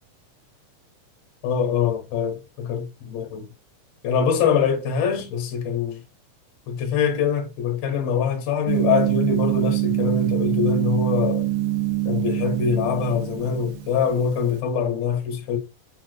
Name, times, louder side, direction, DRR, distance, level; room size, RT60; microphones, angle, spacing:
voice 1, 1.4-3.5 4.0-6.0 6.7-11.5 12.0-15.6, left 6 dB, 85° left, 1.3 m, -24 dB
Gong, 8.7-14.5, right 16 dB, 80° right, 1.6 m, -25 dB
5.2 x 2.2 x 3.0 m
omnidirectional pair, 3.9 m